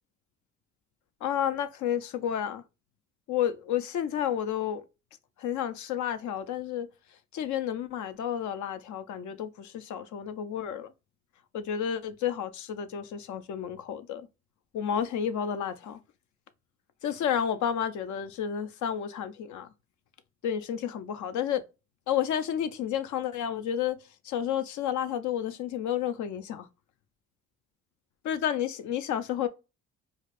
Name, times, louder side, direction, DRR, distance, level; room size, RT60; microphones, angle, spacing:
voice 1, 1.2-2.6 3.3-4.8 5.4-6.9 7.3-10.9 11.5-14.3 14.7-16.0 17.0-19.7 20.4-21.6 22.1-24.0 24.2-26.7 28.2-29.5, left 9 dB, 75° left, 0.6 m, -31 dB
4.9 x 2.1 x 2.4 m
cardioid pair, 90°, 30 cm